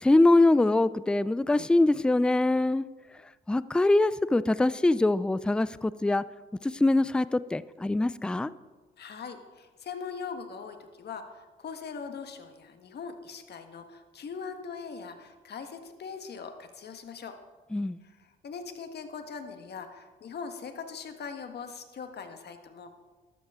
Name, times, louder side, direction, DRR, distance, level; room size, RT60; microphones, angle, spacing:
voice 1, 0.0-2.9 3.5-6.2 6.6-8.5 17.7-18.0, left 2 dB, 5° left, 17 dB, 0.3 m, -23 dB
voice 2, 9.0-17.4 18.0-22.9, left 5 dB, 55° left, 6 dB, 1.5 m, -41 dB
13.0 x 12.5 x 3.7 m, 1.3 s
cardioid pair, 90°, 20 cm